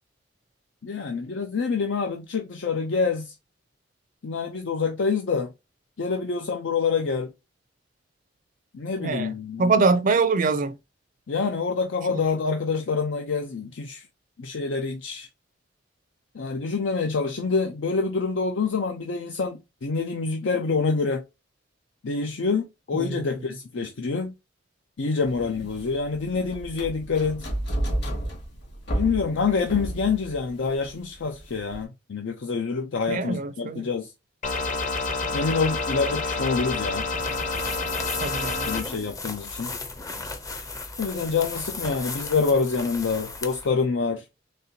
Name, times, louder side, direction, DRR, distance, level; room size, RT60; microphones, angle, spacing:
voice 1, 0.8-3.3 4.2-5.5 6.0-7.3 8.7-9.7 11.3-14.1 14.4-15.3 16.3-21.2 22.0-24.3 25.0-27.5 28.9-34.1 35.3-37.1 38.7-39.8 41.0-44.2, left 4 dB, 90° left, 0.5 m, -26 dB
voice 2, 9.0-10.8 12.1-12.2 22.9-23.6 33.1-33.9 38.2-38.7, right 4 dB, 45° right, 0.4 m, -24 dB
sound 1, 25.2-31.8, right 1 dB, 65° left, 2.2 m, -32 dB
sound 2, 34.4-38.8, left 3 dB, 45° left, 0.8 m, -28 dB
sound 3, 37.1-43.7, left 3 dB, 20° left, 0.5 m, -36 dB
4.1 x 3.3 x 2.7 m
head